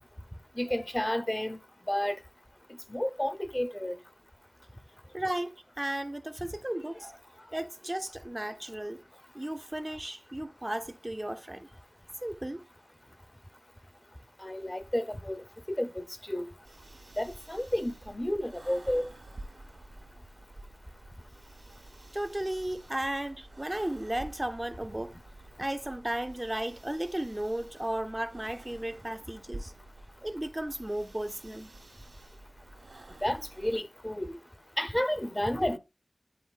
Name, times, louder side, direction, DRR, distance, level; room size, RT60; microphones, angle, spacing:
voice 1, 0.6-1.6 1.9-2.2 2.9-4.0 7.0-7.1 14.4-15.4 15.7-16.5 17.2-19.1 33.2-34.4 34.8-35.8, left 1 dB, 20° left, 0.6 m, -31 dB
voice 2, 5.1-7.1 7.5-9.0 9.3-11.7 12.2-12.6 22.1-25.2 25.6-29.7 30.2-31.7, right 1 dB, 20° right, 0.5 m, -35 dB
sound 1, 16.6-33.8, right 2 dB, 80° right, 1.6 m, -50 dB
10.0 x 4.9 x 2.3 m
wide cardioid pair, 65°, 0 cm